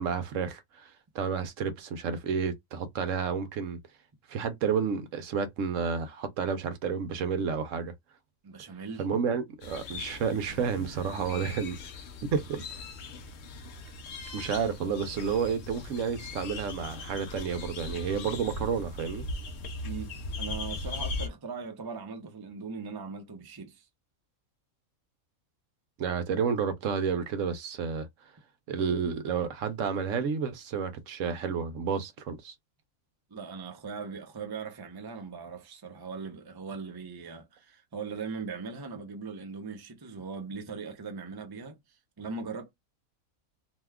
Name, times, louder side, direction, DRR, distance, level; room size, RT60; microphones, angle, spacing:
voice 1, 0.0-3.8 4.3-7.9 9.0-11.8 12.2-12.8 14.3-19.3 26.0-28.1 28.7-32.5, right 6 dB, 70° right, 0.9 m, -31 dB
voice 2, 8.4-9.1 10.5-11.6 19.8-23.9 33.3-42.7, right 5 dB, 25° right, 0.5 m, -40 dB
sound 1, 9.6-21.3, left 3 dB, 60° left, 0.8 m, -39 dB
2.8 x 2.3 x 3.4 m
omnidirectional pair, 1.5 m